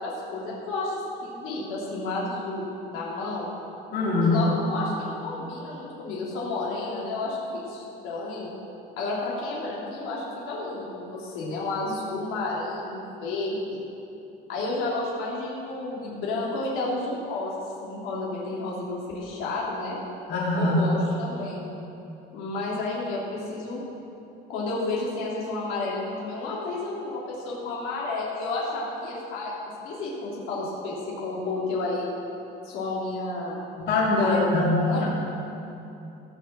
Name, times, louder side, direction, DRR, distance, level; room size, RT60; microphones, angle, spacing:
voice 1, 0.0-3.5 4.2-7.4 7.7-8.5 9.0-13.8 14.5-20.0 20.6-21.6 22.3-23.8 24.5-29.5 29.8-32.1 32.6-33.6 34.1-35.0, left 2 dB, 85° left, -5 dB, 3.3 m, -31 dB
voice 2, 3.9-4.3 20.3-20.8 33.9-35.0, left 2 dB, 55° left, -6 dB, 3.4 m, -23 dB
16.5 x 6.7 x 7.6 m, 2.8 s
cardioid pair, 170°, 20 cm